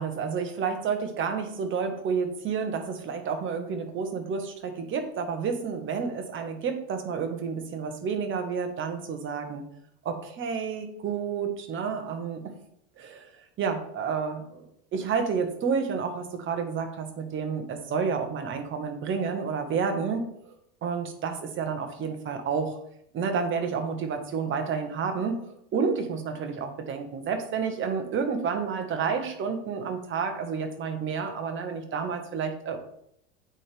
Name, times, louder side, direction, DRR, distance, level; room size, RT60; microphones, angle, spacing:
voice 1, 0.0-9.6 10.0-12.5 13.0-13.3 13.6-14.7 14.9-20.2 20.8-22.8 23.1-32.8, right 5 dB, 40° right, 6 dB, 1.4 m, -30 dB
8.8 x 4.5 x 3.5 m, 0.71 s
supercardioid pair, 110°, 32 cm